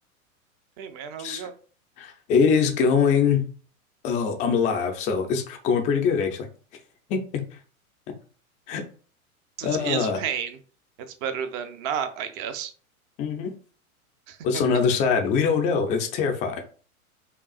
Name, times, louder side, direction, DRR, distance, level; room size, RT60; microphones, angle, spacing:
voice 1, 0.8-1.5 9.6-10.6 11.1-12.7 14.3-14.6, right 8 dB, 30° right, 9 dB, 0.5 m, -31 dB
voice 2, 2.0-3.4 4.0-6.5 7.1-7.4 8.7-8.8 9.6-10.2 13.2-13.5 14.4-16.6, left 6 dB, 20° left, 5 dB, 0.4 m, -23 dB
5.4 x 2.4 x 2.4 m, 0.41 s
hypercardioid pair, 105°, 43 cm